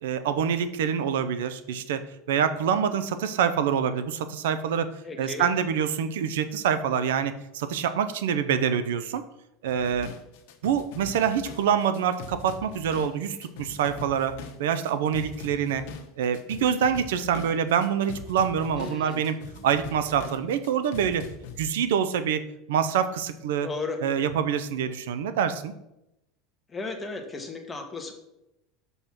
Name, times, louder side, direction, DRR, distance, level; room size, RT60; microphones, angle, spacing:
voice 1, 0.0-4.9 5.2-9.2 9.6-10.1 10.6-15.8 16.2-19.4 19.6-21.3 21.6-22.4 22.7-23.7 24.0-25.7, right 8 dB, 90° right, 11 dB, 0.6 m, -26 dB
voice 2, 5.0-5.5 18.8-19.3 23.6-24.0 26.7-28.1, left 3 dB, 15° left, 3 dB, 1.3 m, -35 dB
sound 1, 9.7-21.7, left 5 dB, 70° left, 1.0 m, -42 dB
6.1 x 5.5 x 5.9 m, 0.87 s
supercardioid pair, 135°, 0 cm